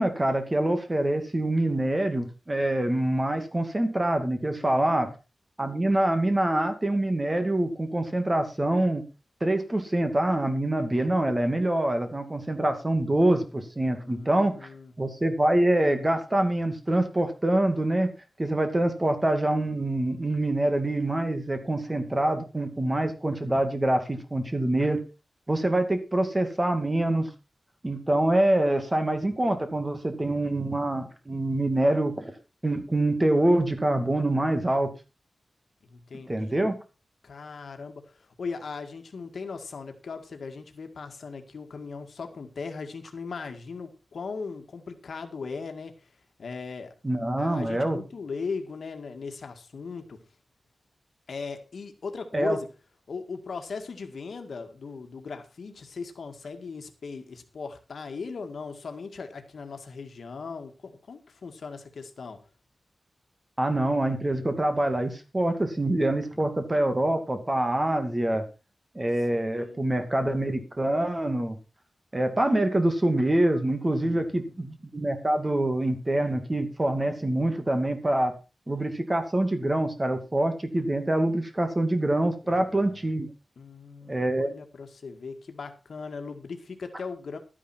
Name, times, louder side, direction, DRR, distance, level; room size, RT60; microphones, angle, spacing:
voice 1, 0.0-5.1 5.6-9.0 9.4-14.5 15.0-18.1 18.4-25.0 25.5-27.3 27.8-32.2 32.6-34.9 36.3-36.7 47.0-48.0 52.3-52.6 63.6-68.4 69.0-71.6 72.1-78.3 78.7-83.3 84.1-84.5, right 1 dB, 20° right, 7 dB, 2.5 m, -25 dB
voice 2, 4.6-5.1 14.0-14.9 35.8-36.7 37.2-46.1 46.4-46.9 47.4-50.2 51.3-52.7 53.1-62.4 66.3-66.5 69.3-69.8 74.0-74.6 82.4-83.0 83.6-87.4, left 4 dB, 75° left, 6 dB, 2.0 m, -38 dB
12.5 x 9.9 x 4.5 m, 0.31 s
wide cardioid pair, 145°, 0 cm